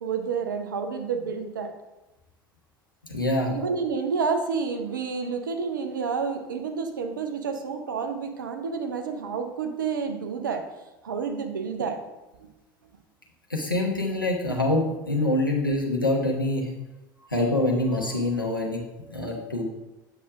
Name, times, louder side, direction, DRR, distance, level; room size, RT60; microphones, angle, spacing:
voice 1, 0.0-1.7 3.5-10.6 11.0-12.0, right 5 dB, 70° right, 6 dB, 0.7 m, -29 dB
voice 2, 3.1-3.5 13.5-16.7 17.3-18.8 19.1-19.6, left 1 dB, 85° left, -1 dB, 1.0 m, -25 dB
7.8 x 6.3 x 2.5 m, 1.0 s
figure-of-eight pair, 70°, 11 cm